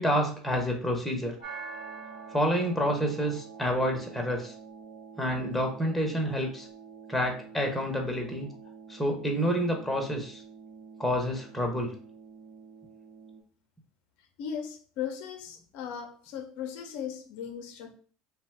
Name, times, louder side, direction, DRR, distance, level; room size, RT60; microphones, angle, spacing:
voice 1, 0.0-1.3 2.3-4.5 5.2-6.7 7.1-8.5 8.9-10.4 11.0-11.9, equal, 5° left, 1 dB, 0.8 m, -28 dB
sound 1, 1.4-13.4, right 5 dB, 70° right, 0.9 m, -47 dB
voice 2, 14.4-17.9, left 8 dB, 70° left, 4 dB, 0.5 m, -37 dB
2.6 x 2.3 x 3.2 m, 0.43 s
hypercardioid pair, 75°, 3 cm